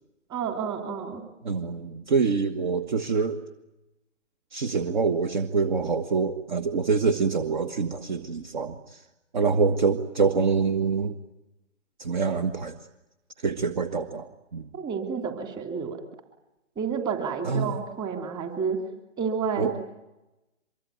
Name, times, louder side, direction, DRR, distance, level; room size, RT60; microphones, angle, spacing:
voice 1, 0.3-1.2 14.7-16.0 16.8-18.8 19.2-19.8, right 6 dB, 10° right, 5 dB, 3.0 m, -30 dB
voice 2, 1.4-3.4 4.5-9.0 9.3-11.1 12.0-12.8 13.4-14.7 17.4-17.8 19.6-19.8, right 5 dB, 40° right, 9 dB, 1.7 m, -25 dB
24.5 x 23.0 x 9.2 m, 0.94 s
figure-of-eight pair, 150°, 37 cm